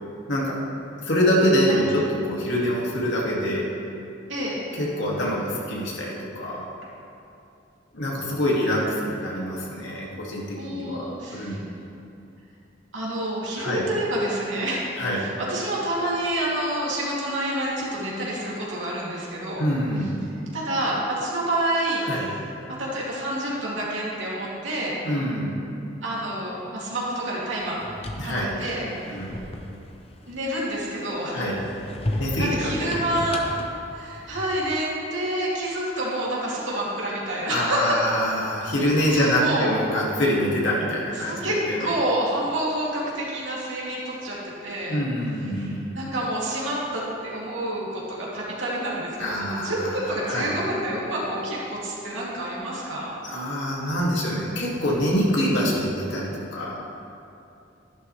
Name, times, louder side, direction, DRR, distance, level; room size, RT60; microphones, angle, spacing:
voice 1, 1.1-3.7 4.7-6.6 7.9-11.7 13.6-13.8 15.0-15.3 19.6-20.2 22.0-22.3 25.0-25.6 28.2-28.6 29.1-29.3 31.3-31.7 32.2-33.2 37.5-41.9 44.9-45.9 49.2-50.5 53.2-56.8, equal, 80° left, -4 dB, 2.3 m, -25 dB
voice 2, 10.6-11.6 12.9-14.8 15.2-19.6 20.5-22.0 22.8-24.9 26.0-27.8 28.2-28.8 30.3-31.4 32.4-33.4 33.9-38.0 39.1-39.7 41.1-44.4 44.6-45.0 45.5-53.2, right 1 dB, 85° right, -6 dB, 2.8 m, -28 dB
sound 1, 27.6-30.9 31.4-34.8, left 1 dB, 30° left, 0.8 m, -35 dB
12.0 x 11.5 x 3.3 m, 2.7 s
head